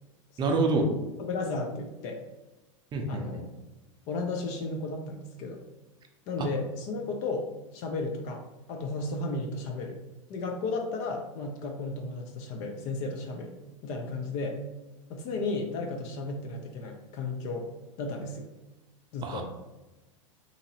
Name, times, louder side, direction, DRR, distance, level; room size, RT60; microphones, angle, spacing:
voice 1, 0.4-0.9 2.9-3.2 19.2-19.4, right 3 dB, 25° right, 3 dB, 0.5 m, -26 dB
voice 2, 1.2-2.2 3.1-3.5 4.1-5.6 6.3-8.4 8.7-10.0 10.3-14.6 15.1-17.7 18.0-18.5 19.1-19.4, left 3 dB, 45° left, 3 dB, 0.5 m, -34 dB
2.8 x 2.5 x 2.8 m, 1.0 s
hypercardioid pair, 105°, 17 cm